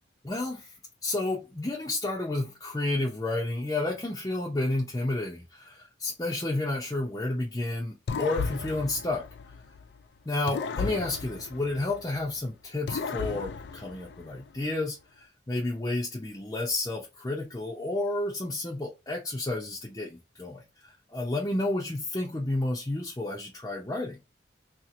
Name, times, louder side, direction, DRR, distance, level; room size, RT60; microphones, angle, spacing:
voice 1, 0.2-0.7 1.0-9.3 10.3-24.2, left 2 dB, 20° left, 0.6 m, -31 dB
sound 1, 8.1-10.0 10.5-12.4 12.9-14.6, left 5 dB, 65° left, 0.3 m, -35 dB
2.9 x 2.4 x 3.6 m
head